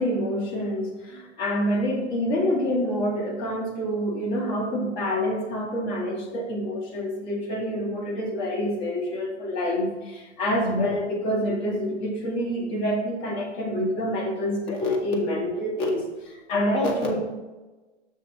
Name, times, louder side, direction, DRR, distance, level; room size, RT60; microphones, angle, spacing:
voice 1, 0.0-17.2, equal, 40° left, -1 dB, 2.0 m, -27 dB
6.1 x 6.1 x 4.2 m, 1.2 s
figure-of-eight pair, 110°, 35 cm